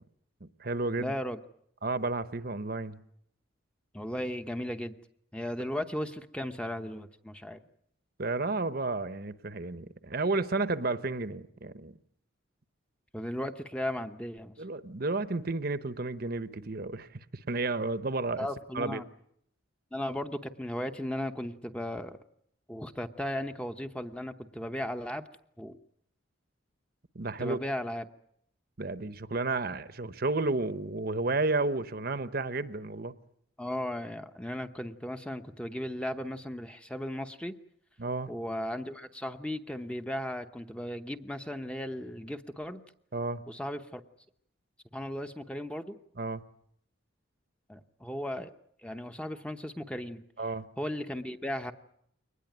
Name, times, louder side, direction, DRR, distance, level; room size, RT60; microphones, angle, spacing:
voice 1, 0.4-1.1 1.8-3.0 8.2-11.9 14.6-18.5 18.7-19.0 27.1-27.6 28.8-33.1 38.0-38.3 43.1-43.4 46.2-46.4 50.4-50.7, right 3 dB, 50° right, 0.9 m, -32 dB
voice 2, 1.0-1.4 3.9-4.9 5.3-7.6 13.1-14.5 18.4-19.0 19.9-22.2 22.7-25.3 25.6-25.8 27.4-28.0 33.6-37.5 38.3-42.8 43.5-44.0 44.9-46.0 47.7-48.5 48.8-50.2 50.8-51.7, left 1 dB, 5° left, 0.9 m, -36 dB
23.0 x 19.5 x 9.3 m
head